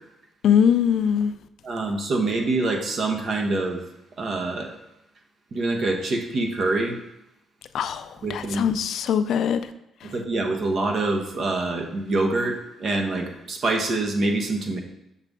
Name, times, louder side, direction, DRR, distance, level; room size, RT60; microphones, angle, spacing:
voice 1, 0.4-1.3 7.7-9.6, left 8 dB, 70° left, 0.4 m, -22 dB
voice 2, 1.6-3.8 4.2-4.7 5.5-7.0 8.2-8.7 10.0-14.8, right 2 dB, 55° right, 0.9 m, -25 dB
6.8 x 4.0 x 3.5 m
cardioid pair, 90°, 0 cm